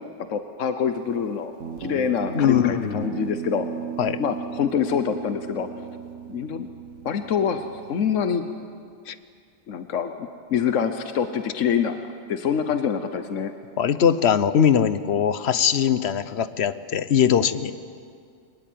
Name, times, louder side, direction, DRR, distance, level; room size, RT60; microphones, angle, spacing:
voice 1, 0.3-1.5 1.8-3.7 4.2-5.7 6.3-6.7 7.0-8.5 9.7-13.5, left 7 dB, 75° left, 9 dB, 1.3 m, -25 dB
Guitar, 1.6-8.2, right 8 dB, 80° right, 1.4 m, -36 dB
voice 2, 2.3-3.1 4.0-4.2 9.1-9.2 13.8-17.7, left 8 dB, 60° left, 14 dB, 1.1 m, -21 dB
23.5 x 20.0 x 9.3 m, 2.3 s
omnidirectional pair, 1.3 m